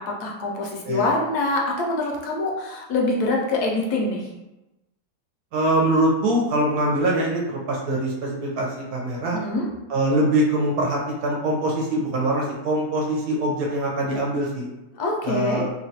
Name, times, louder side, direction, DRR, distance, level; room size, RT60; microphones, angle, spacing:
voice 1, 0.1-4.3 9.3-9.7 14.9-15.6, left 2 dB, 75° left, -1 dB, 1.1 m, -25 dB
voice 2, 5.5-9.4 9.9-14.7 15.2-15.7, right 1 dB, 70° right, -2 dB, 1.0 m, -23 dB
3.0 x 2.2 x 2.7 m, 1.0 s
omnidirectional pair, 1.8 m